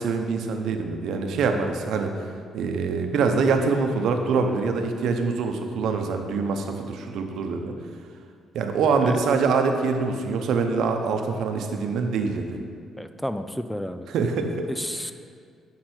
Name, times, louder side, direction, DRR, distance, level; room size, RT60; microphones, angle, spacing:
voice 1, 0.0-2.3 2.5-7.7 8.5-12.6 14.1-14.7 15.0-15.1, right 4 dB, 75° right, 5 dB, 0.8 m, -24 dB
voice 2, 13.0-14.1 14.7-15.1, equal, 5° left, 9 dB, 0.4 m, -31 dB
9.5 x 5.8 x 4.4 m, 2.1 s
cardioid pair, 90°, 0 cm